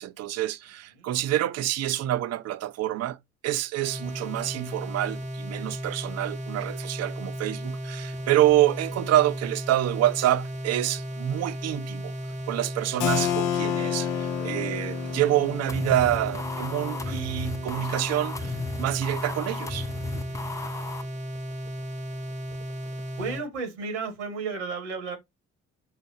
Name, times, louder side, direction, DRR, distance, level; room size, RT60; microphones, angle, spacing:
voice 1, 0.0-3.2 3.4-12.1 12.5-18.5 18.8-20.2, right 13 dB, 50° right, 0.5 m, -27 dB
sound 1, 3.8-23.5, equal, 20° right, 0.8 m, -35 dB
Keyboard (musical), 13.0-18.5, left 10 dB, 65° left, 0.6 m, -31 dB
sound 2, 15.7-21.0, left 4 dB, 10° left, 0.3 m, -36 dB
voice 2, 19.9-20.7 23.1-25.2, right 4 dB, 85° right, 1.2 m, -34 dB
5.6 x 2.0 x 2.6 m
hypercardioid pair, 50°, 34 cm